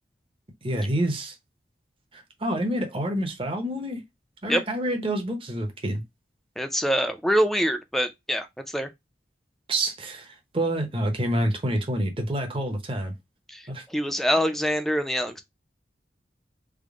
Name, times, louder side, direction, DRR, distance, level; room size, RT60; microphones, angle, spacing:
voice 1, 0.6-1.3 2.1-4.0 4.4-6.0 9.7-13.1 13.7-13.8, right 1 dB, 30° right, 0.8 m, -28 dB
voice 2, 6.6-8.9 13.5-15.4, equal, ahead, 0.4 m, -25 dB
3.5 x 2.1 x 3.6 m
head